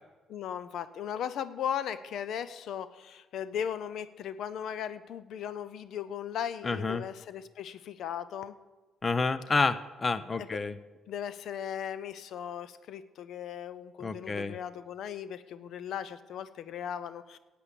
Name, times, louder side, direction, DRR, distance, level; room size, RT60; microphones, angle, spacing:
voice 1, 0.3-8.5 11.1-17.4, left 9 dB, 75° left, 14 dB, 0.5 m, -37 dB
voice 2, 6.6-7.0 9.0-10.8 14.0-14.6, left 3 dB, 30° left, 15 dB, 0.6 m, -29 dB
11.0 x 8.5 x 8.3 m, 1.2 s
cardioid pair, 90°, 0 cm